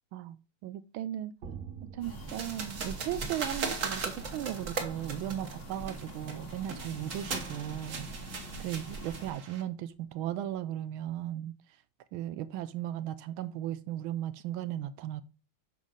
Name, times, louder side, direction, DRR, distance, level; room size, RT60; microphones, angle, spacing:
voice 1, 0.6-1.3 1.9-8.1 8.6-11.5 12.1-15.2, right 12 dB, 85° right, 1.4 m, -36 dB
sound 1, 1.4-10.5, right 6 dB, 65° right, 1.7 m, -51 dB
sound 2, 2.0-9.3, right 2 dB, 80° left, 3.8 m, -44 dB
sound 3, 2.3-9.6, right 4 dB, 45° right, 1.5 m, -39 dB
7.6 x 5.5 x 5.0 m
omnidirectional pair, 2.2 m